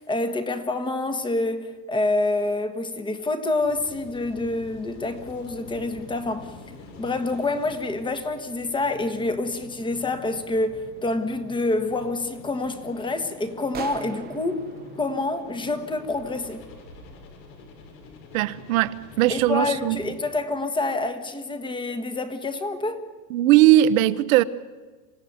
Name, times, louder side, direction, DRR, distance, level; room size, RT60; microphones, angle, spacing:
voice 1, 0.0-6.5 7.0-14.6 15.0-16.7 19.3-23.0, left 2 dB, 10° left, 1.4 m, -27 dB
sound 1, 3.6-20.1, left 3 dB, 90° left, 7.2 m, -46 dB
sound 2, 13.7-16.3, right 9 dB, 20° right, 1.0 m, -40 dB
voice 2, 18.3-20.0 23.3-24.4, right 14 dB, 55° right, 1.1 m, -19 dB
27.0 x 16.5 x 9.4 m
supercardioid pair, 155°, 50 cm